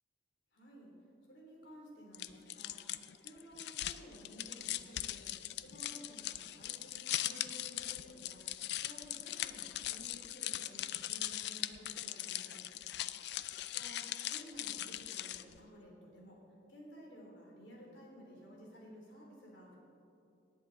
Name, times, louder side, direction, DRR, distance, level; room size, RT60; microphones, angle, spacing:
voice 1, 0.5-0.9 1.2-2.8 3.2-5.3 5.5-8.4 8.8-12.6 13.7-14.0 14.3-16.4 16.7-19.8, equal, 85° left, -2 dB, 3.3 m, -54 dB
sound 1, 2.1-15.6, left 13 dB, 65° left, 0.4 m, -40 dB
19.5 x 8.1 x 4.0 m, 2.7 s
head